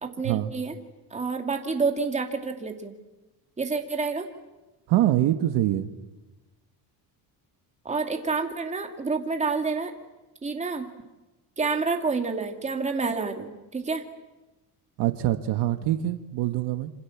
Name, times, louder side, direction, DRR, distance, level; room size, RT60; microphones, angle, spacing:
voice 1, 0.0-0.7 1.1-3.0 3.6-4.3 7.8-9.9 10.4-10.9 11.6-14.0, right 4 dB, 15° right, 4 dB, 2.6 m, -28 dB
voice 2, 4.9-5.9 15.0-16.9, right 13 dB, 75° right, 9 dB, 1.6 m, -24 dB
27.5 x 27.0 x 7.3 m, 1.1 s
cardioid pair, 150°, 41 cm